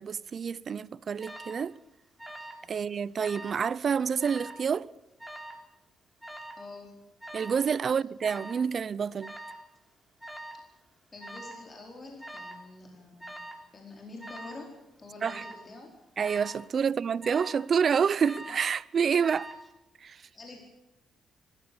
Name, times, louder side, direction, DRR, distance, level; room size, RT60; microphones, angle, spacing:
voice 1, 0.0-1.7 2.7-4.9 7.3-9.3 15.2-15.4 16.2-19.5 20.0-20.2, right 6 dB, 50° right, 0.6 m, -28 dB
Alarm, 1.2-1.6 2.2-2.7 2.9-3.6 4.2-4.6 5.2-5.6 6.2-6.6 7.2-7.6 8.2-8.6 9.2-9.6 10.2-10.6 11.2-11.6 12.2-12.7 13.2-13.6 14.2-14.6 15.2-15.6 16.2-16.6 17.2-17.7 18.2-18.7 19.2-19.7, right 1 dB, 5° right, 3.4 m, -43 dB
voice 2, 6.6-7.0 11.1-13.5 13.7-15.9 20.3-20.6, left 3 dB, 35° left, 4.5 m, -47 dB
23.5 x 14.0 x 8.6 m
cardioid pair, 90°, 0 cm